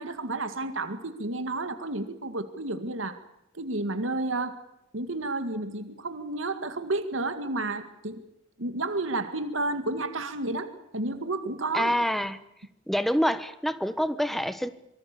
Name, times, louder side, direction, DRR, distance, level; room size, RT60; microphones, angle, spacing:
voice 1, 0.0-3.2 3.5-4.6 4.9-8.2 8.6-11.9, right 2 dB, 85° right, 8 dB, 2.1 m, -31 dB
voice 2, 11.7-12.4 12.9-14.7, equal, ahead, 12 dB, 1.2 m, -26 dB
26.0 x 23.5 x 6.9 m, 0.82 s
head